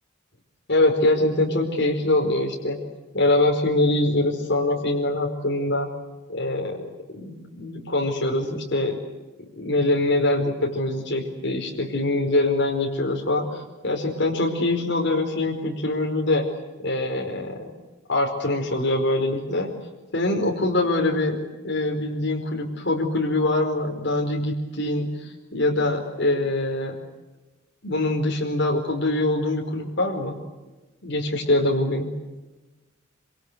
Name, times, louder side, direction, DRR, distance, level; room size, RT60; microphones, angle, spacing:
voice 1, 0.7-2.8 3.1-5.9 6.3-6.8 7.2-9.0 9.6-16.5 16.8-17.7 18.1-19.7 20.1-21.4 21.6-26.9 27.8-30.4 31.0-32.1, left 2 dB, 55° left, 0 dB, 4.9 m, -23 dB
27.0 x 26.0 x 8.2 m, 1.1 s
head